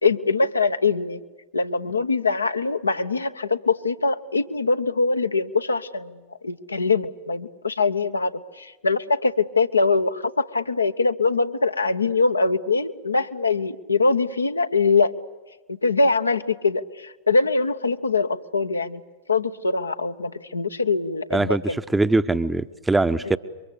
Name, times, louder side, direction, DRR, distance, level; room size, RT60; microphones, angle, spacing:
voice 1, 0.0-1.2 1.5-6.2 6.4-8.3 8.6-15.1 15.8-19.0 19.3-21.8 23.2-23.3, left 4 dB, 80° left, 8 dB, 1.0 m, -23 dB
voice 2, 21.3-23.4, right 2 dB, 10° right, 13 dB, 0.8 m, -22 dB
27.5 x 24.0 x 8.1 m, 1.2 s
figure-of-eight pair, 90°, 0 cm